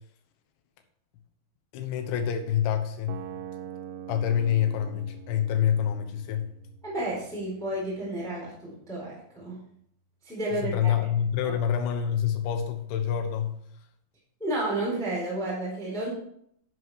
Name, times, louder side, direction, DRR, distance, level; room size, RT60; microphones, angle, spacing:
voice 1, 1.7-3.2 4.1-6.5 10.6-13.6, left 9 dB, 80° left, 6 dB, 3.5 m, -27 dB
sound 1, 3.1-9.1, right 8 dB, 90° right, 3.1 m, -44 dB
voice 2, 6.8-9.6 10.2-10.9 11.4-11.5 14.4-16.1, right 1 dB, ahead, -5 dB, 3.2 m, -31 dB
11.0 x 7.8 x 4.8 m, 0.68 s
omnidirectional pair, 5.3 m